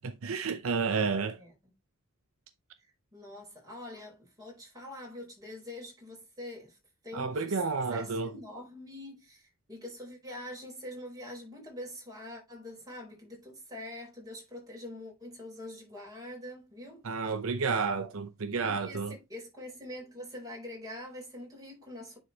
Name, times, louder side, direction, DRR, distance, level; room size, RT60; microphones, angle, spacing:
voice 1, 0.0-1.4 7.1-8.3 17.0-19.1, right 4 dB, 70° right, 0.7 m, -31 dB
voice 2, 3.1-6.8 7.0-7.6 7.9-17.1 18.5-22.2, left 1 dB, 15° right, 4.4 m, -44 dB
9.8 x 4.1 x 3.2 m
head